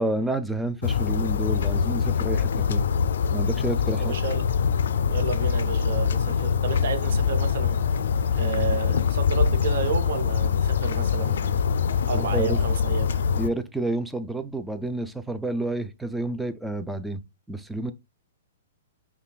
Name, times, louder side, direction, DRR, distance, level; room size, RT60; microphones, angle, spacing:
voice 1, 0.0-2.8 3.3-4.1 12.1-12.6 13.4-17.2 17.5-17.9, right 2 dB, 5° right, 0.3 m, -29 dB
sound 1, 0.8-13.5, left 7 dB, 75° left, 0.3 m, -24 dB
voice 2, 4.0-4.4 5.1-7.8 8.3-11.6 12.1-13.1, right 7 dB, 65° right, 0.7 m, -31 dB
5.5 x 2.2 x 2.3 m
hypercardioid pair, 145°, 0 cm